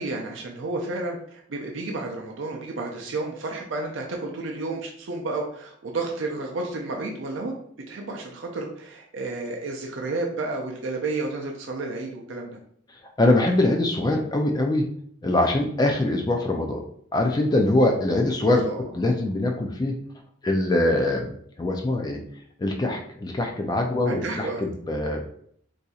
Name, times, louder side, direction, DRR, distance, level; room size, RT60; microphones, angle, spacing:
voice 1, 0.0-7.5 7.9-12.5 18.5-18.8 24.0-24.6, right 2 dB, 75° right, 0 dB, 0.5 m, -31 dB
voice 2, 13.2-14.9 15.2-16.8 17.1-18.6 18.9-20.0 20.4-22.2 22.6-25.3, left 2 dB, 20° left, 2 dB, 0.3 m, -23 dB
4.0 x 2.7 x 2.3 m, 0.65 s
head